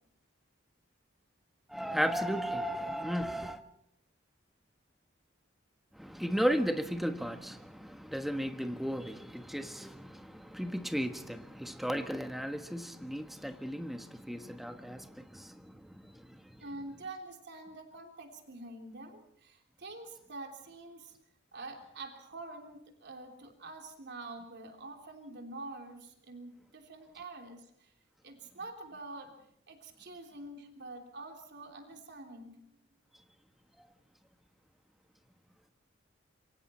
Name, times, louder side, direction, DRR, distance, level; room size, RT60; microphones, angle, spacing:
voice 1, 1.7-3.6 6.0-16.1, equal, ahead, 7 dB, 1.3 m, -35 dB
voice 2, 16.6-21.1 21.5-27.9 28.2-29.4 29.7-32.6, right 2 dB, 60° right, 3 dB, 3.3 m, -46 dB
26.5 x 24.0 x 4.4 m, 0.69 s
head